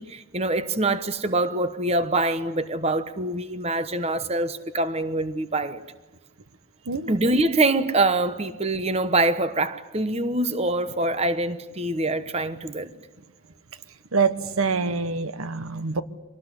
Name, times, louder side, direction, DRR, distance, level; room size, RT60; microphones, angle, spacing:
voice 1, 0.0-5.8 7.1-12.9, right 2 dB, 30° right, 12 dB, 1.1 m, -24 dB
voice 2, 14.1-16.0, right 4 dB, 85° right, 13 dB, 1.2 m, -25 dB
25.0 x 19.0 x 9.9 m, 1.1 s
head